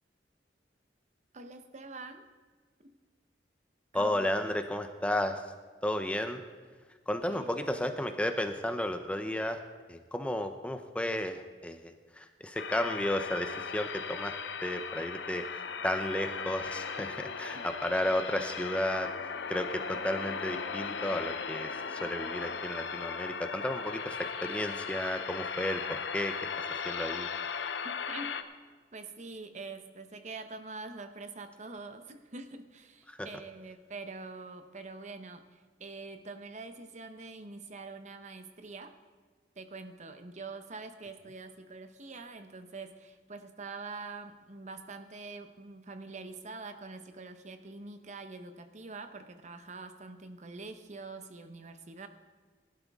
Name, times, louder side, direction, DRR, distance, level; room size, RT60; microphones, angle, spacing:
voice 1, 1.3-2.3 2.8-2.9 3.9-4.6 7.2-7.6 17.5-17.7 27.8-28.4 28.9-39.0 39.6-52.1, right 3 dB, 45° right, 9 dB, 0.9 m, -45 dB
voice 2, 3.9-5.4 5.8-6.4 7.1-9.6 9.9-14.3 14.6-26.3 26.8-27.3 33.1-33.3, left 1 dB, 5° left, 7 dB, 0.6 m, -33 dB
sound 1, 12.6-28.4, left 6 dB, 90° left, 0.8 m, -37 dB
18.0 x 12.0 x 3.6 m, 1.5 s
head